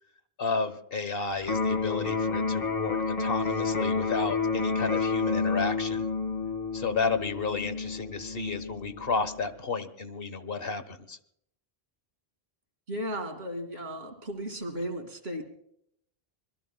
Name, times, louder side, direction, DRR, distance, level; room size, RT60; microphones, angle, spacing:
voice 1, 0.4-6.1 6.7-11.2, left 4 dB, 65° left, 11 dB, 1.4 m, -32 dB
Electric guitar, 1.4-9.4, left 4 dB, 40° left, 2.1 m, -30 dB
voice 2, 12.9-15.4, equal, 75° right, 5 dB, 2.8 m, -35 dB
25.5 x 22.0 x 2.3 m, 0.70 s
omnidirectional pair, 1.1 m